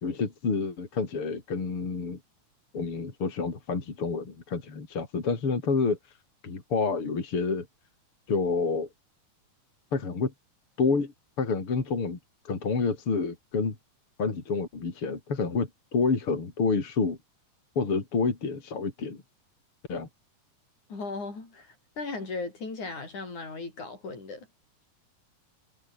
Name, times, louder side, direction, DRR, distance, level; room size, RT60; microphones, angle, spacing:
voice 1, 0.0-2.2 2.7-6.0 6.4-7.7 8.3-8.9 9.9-10.3 10.8-11.1 11.4-12.2 12.4-13.7 14.2-17.2 17.8-19.2 19.9-20.1, left 4 dB, 45° left, 4.7 m, -28 dB
voice 2, 20.9-24.5, left 3 dB, 75° left, 8.7 m, -37 dB
omnidirectional pair, 3.5 m